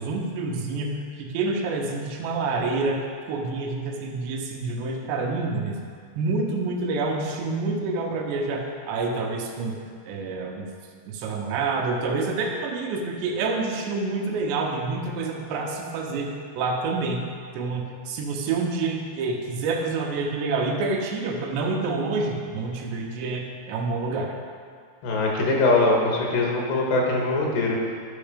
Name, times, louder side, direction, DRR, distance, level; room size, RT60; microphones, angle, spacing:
voice 1, 0.0-5.8 6.2-9.8 10.1-10.7 11.1-17.2 17.5-24.3, right 3 dB, 80° right, 1 dB, 3.0 m, -28 dB
voice 2, 25.0-27.8, left 2 dB, 80° left, -1 dB, 3.5 m, -22 dB
11.5 x 5.5 x 5.1 m, 2.1 s
omnidirectional pair, 4.9 m